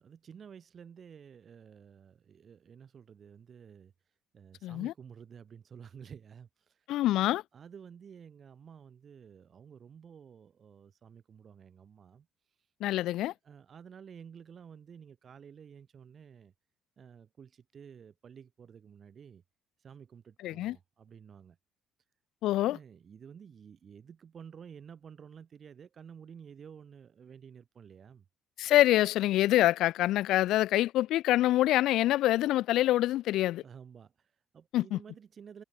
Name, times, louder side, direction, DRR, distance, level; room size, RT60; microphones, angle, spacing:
voice 1, 0.0-3.9 4.3-6.8 7.5-12.3 13.4-16.5 17.0-19.4 19.8-21.6 22.7-28.2 33.6-35.6, right 7 dB, 40° right, 6.8 m, -51 dB
voice 2, 4.6-4.9 6.9-7.4 12.8-13.3 20.4-20.8 22.4-22.8 28.6-33.6 34.7-35.0, left 15 dB, 75° left, 0.7 m, -26 dB
cardioid pair, 125°, 0 cm